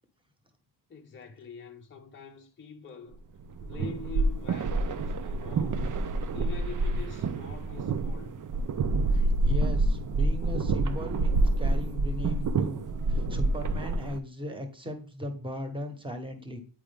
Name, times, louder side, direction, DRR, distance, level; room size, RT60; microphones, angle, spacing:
voice 1, 0.9-3.2 3.6-5.9 6.3-8.4, left 5 dB, 25° left, 0.7 m, -44 dB
sound 1, 3.4-14.2, right 2 dB, 40° right, 0.5 m, -27 dB
voice 2, 9.1-12.8 13.1-16.6, left 1 dB, 10° right, 1.1 m, -38 dB
8.9 x 5.0 x 3.5 m
wide cardioid pair, 165°, 48 cm